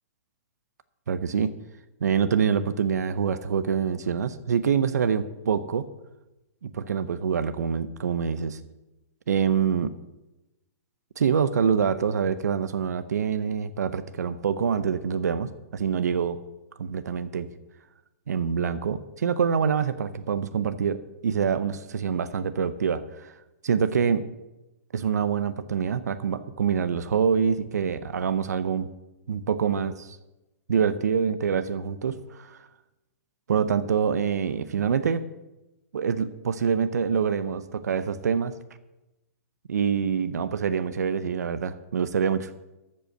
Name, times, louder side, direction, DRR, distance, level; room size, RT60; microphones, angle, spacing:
voice 1, 1.1-1.5 2.0-5.9 6.6-8.6 9.3-9.9 11.2-16.4 16.8-17.5 18.3-23.3 23.6-24.2 24.9-28.9 29.3-30.2 30.7-32.7 33.5-35.2 35.9-38.5 39.7-42.5, right 7 dB, 90° right, 13 dB, 0.7 m, -25 dB
13.5 x 5.5 x 7.5 m, 0.99 s
hypercardioid pair, 145°, 9 cm